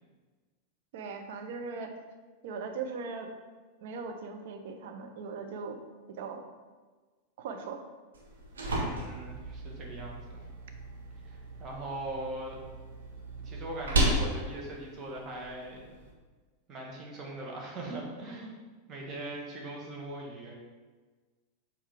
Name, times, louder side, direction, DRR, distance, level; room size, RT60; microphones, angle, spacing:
voice 1, 0.9-1.9 2.4-3.3 3.8-5.8 6.1-6.4 7.4-7.8, right 5 dB, 50° right, 5 dB, 0.8 m, -39 dB
sound 1, 8.1-16.1, right 1 dB, 70° right, 1.5 m, -34 dB
voice 2, 8.9-10.4 11.2-12.6 13.4-15.8 16.7-18.6 18.9-20.5, right 1 dB, 30° right, -2 dB, 1.6 m, -40 dB
7.2 x 4.7 x 3.7 m, 1.4 s
figure-of-eight pair, 90°, 0 cm